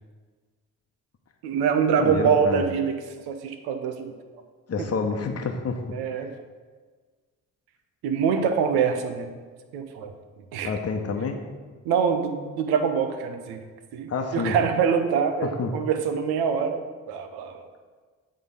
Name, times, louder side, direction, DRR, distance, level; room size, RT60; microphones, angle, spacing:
voice 1, 1.4-3.0 3.3-4.1 4.8-4.9 5.9-6.3 8.0-9.3 9.7-10.1 10.5-10.7 11.8-13.6 13.9-17.7, right 6 dB, 75° right, 7 dB, 0.8 m, -24 dB
voice 2, 2.0-2.6 4.7-6.3 10.6-11.4 14.1-14.6 15.4-15.7, left 4 dB, 40° left, 4 dB, 1.0 m, -29 dB
8.4 x 3.8 x 5.4 m, 1.4 s
hypercardioid pair, 45°, 38 cm